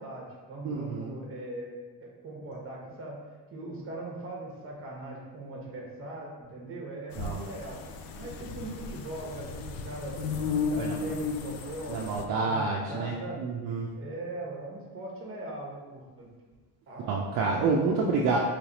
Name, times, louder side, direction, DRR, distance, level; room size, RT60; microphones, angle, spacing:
voice 1, 0.0-3.2 3.5-7.8 8.1-10.2 10.7-13.4 14.0-16.3 16.9-17.1, right 2 dB, 35° right, -2 dB, 1.1 m, -40 dB
voice 2, 0.6-1.1 7.2-7.4 10.7-11.0 11.9-13.9 17.0-18.4, right 4 dB, 60° right, -1 dB, 0.5 m, -28 dB
sound 1, 7.1-12.2, left 5 dB, 70° left, 0.5 m, -34 dB
3.2 x 3.2 x 4.0 m, 1.3 s
cardioid pair, 145°, 36 cm